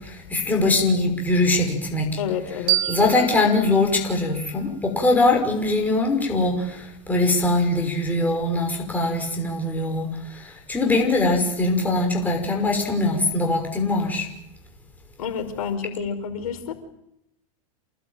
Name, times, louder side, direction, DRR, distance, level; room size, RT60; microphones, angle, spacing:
voice 1, 0.3-2.1 2.9-6.8 7.1-10.1 10.7-14.3, left 2 dB, 10° left, 2 dB, 5.9 m, -21 dB
voice 2, 2.2-3.1 15.2-16.7, left 7 dB, 80° left, 7 dB, 5.2 m, -29 dB
sound 1, 2.7-5.5, right 15 dB, 25° right, 3.9 m, -30 dB
28.5 x 19.0 x 9.2 m, 0.82 s
supercardioid pair, 155°, 18 cm